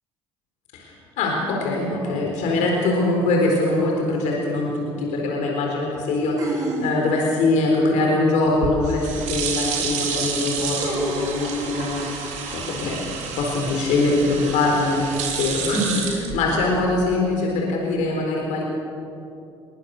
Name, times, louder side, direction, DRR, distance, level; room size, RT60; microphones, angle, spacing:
voice 1, 0.7-13.0 13.4-15.0 15.4-18.6, left 2 dB, 70° left, -1 dB, 4.2 m, -23 dB
sound 1, 4.3-4.4 6.4-7.3 9.2-9.3 10.8-11.5, right 2 dB, 25° right, 4.9 m, -29 dB
sound 2, 8.5-16.9, right 5 dB, 65° right, 4.1 m, -30 dB
22.0 x 19.5 x 6.7 m, 2.6 s
hypercardioid pair, 65°, 13 cm